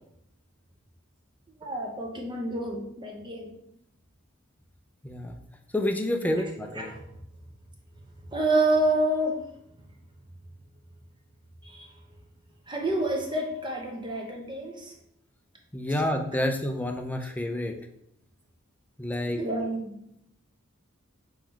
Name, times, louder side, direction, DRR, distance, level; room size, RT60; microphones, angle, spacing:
voice 1, 1.6-3.5 6.3-7.1 8.3-9.4 11.6-11.9 12.7-14.9 19.4-20.0, right 1 dB, 20° right, 0 dB, 0.7 m, -28 dB
voice 2, 5.0-5.4 5.7-6.9 15.7-17.7 19.0-19.4, left 1 dB, 10° left, 4 dB, 0.4 m, -29 dB
3.8 x 3.1 x 4.5 m, 0.77 s
head